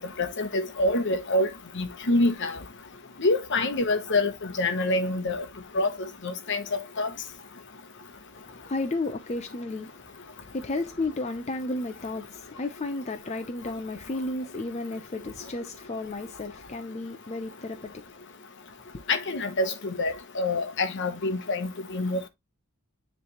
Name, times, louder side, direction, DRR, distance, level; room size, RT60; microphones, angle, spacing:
voice 1, 0.2-1.5 1.8-2.5 3.2-4.3 4.6-5.4 5.7-5.9 6.2-6.6 7.0-7.1 19.1-22.2, left 2 dB, 55° left, 1.0 m, -26 dB
voice 2, 8.3-18.1, left 2 dB, 30° left, 0.6 m, -33 dB
9.6 x 3.4 x 3.0 m
head